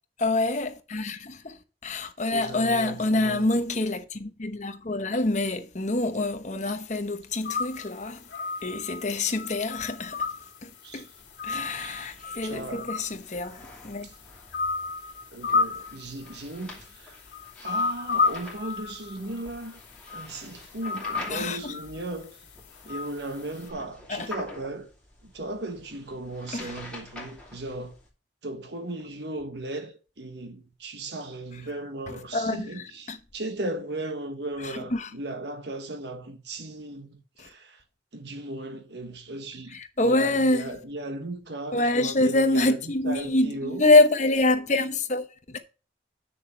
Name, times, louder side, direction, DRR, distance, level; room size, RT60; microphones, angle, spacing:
voice 1, 0.2-8.2 8.6-10.3 10.6-11.1 11.4-14.1 21.3-21.7 24.1-24.3 26.5-26.7 32.3-33.2 34.6-35.1 37.4-37.5 39.7-40.6 41.7-45.6, left 2 dB, 40° left, 1.0 m, -26 dB
voice 2, 2.3-3.5 10.8-11.1 11.8-12.2 12.4-12.9 14.0-14.1 15.3-17.2 17.6-19.8 20.1-22.5 22.8-24.9 25.2-28.0 28.4-37.8 38.1-43.8, right 1 dB, 65° right, 1.3 m, -37 dB
sound 1, 7.4-23.7, left 4 dB, 65° left, 2.7 m, -33 dB
sound 2, 11.1-28.1, left 2 dB, 5° left, 2.6 m, -47 dB
8.5 x 6.5 x 4.5 m
head